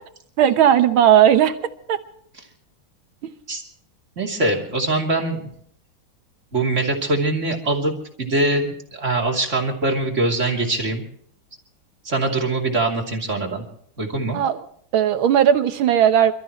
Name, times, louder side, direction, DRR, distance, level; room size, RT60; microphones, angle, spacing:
voice 1, 0.4-1.6 1.9-2.0 3.2-3.3 14.3-14.6 14.9-16.3, right 9 dB, 80° right, 9 dB, 1.9 m, -16 dB
voice 2, 4.2-5.5 6.5-7.9 8.2-11.0 12.0-13.6 14.0-14.4, right 2 dB, 35° right, 1 dB, 3.1 m, -22 dB
28.5 x 14.0 x 3.1 m, 0.63 s
omnidirectional pair, 2.3 m